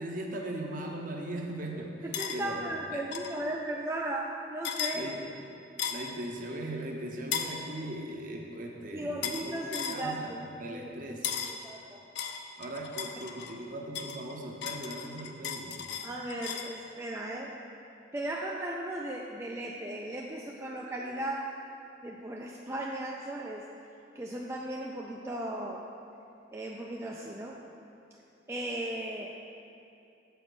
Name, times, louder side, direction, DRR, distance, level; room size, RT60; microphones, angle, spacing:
voice 1, 0.0-2.6 2.9-3.0 4.9-5.3 5.9-11.3 12.6-15.8, right 1 dB, 45° right, 1 dB, 0.8 m, -39 dB
voice 2, 2.0-5.1 8.9-10.4 10.7-11.2 11.5-12.0 16.0-17.6 18.1-21.5 22.0-23.7 24.2-25.9 26.5-27.6 28.5-29.4, right 1 dB, 15° right, -2 dB, 0.3 m, -36 dB
sound 1, 2.1-2.4 3.1-3.3 4.6-5.0 5.8-6.1 7.3-7.6 9.2-9.5 9.7-10.0 11.2-11.6 12.2-13.6 14.0-16.7, left 7 dB, 60° left, 0.5 m, -35 dB
6.9 x 5.0 x 6.2 m, 2.6 s
head